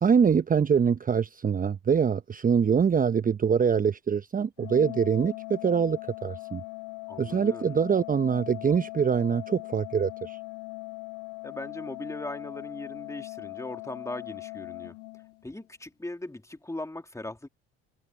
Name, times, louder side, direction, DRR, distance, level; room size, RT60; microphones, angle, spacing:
voice 1, 0.0-6.6 7.2-10.4, right 6 dB, 30° right, 0.9 m, -24 dB
Organ, 4.6-15.6, left 28 dB, 70° left, 0.7 m, -40 dB
voice 2, 7.1-7.8 11.4-15.0 15.4-17.5, left 2 dB, 10° left, 2.7 m, -39 dB
hypercardioid pair, 60°, 30 cm